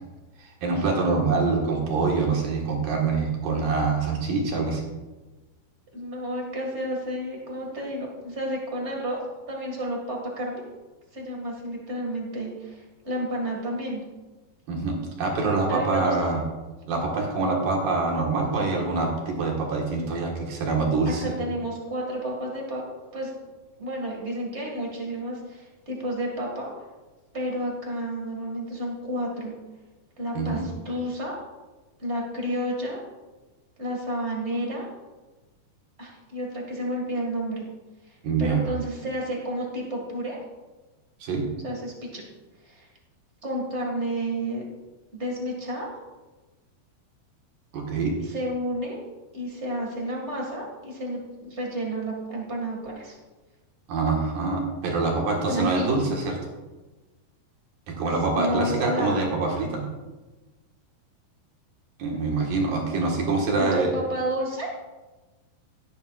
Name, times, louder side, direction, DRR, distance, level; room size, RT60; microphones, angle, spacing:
voice 1, 0.4-4.8 14.7-16.4 16.9-21.4 30.3-30.6 38.2-38.6 41.2-41.4 47.7-48.1 53.9-56.4 57.9-59.8 62.0-63.9, right 3 dB, 65° right, -1 dB, 3.0 m, -25 dB
voice 2, 5.9-9.2 9.5-10.6 11.1-14.0 15.7-16.3 21.0-22.8 23.1-23.3 23.8-26.7 27.3-29.5 30.2-31.3 32.0-33.0 33.8-34.9 36.0-37.6 38.1-40.4 41.6-42.2 42.6-42.9 43.4-44.6 45.1-45.9 48.2-49.0 49.3-53.2 55.4-55.9 58.3-59.2 63.6-64.7, right 1 dB, 45° right, -1 dB, 0.8 m, -31 dB
17.0 x 9.2 x 2.4 m, 1.2 s
omnidirectional pair, 4.7 m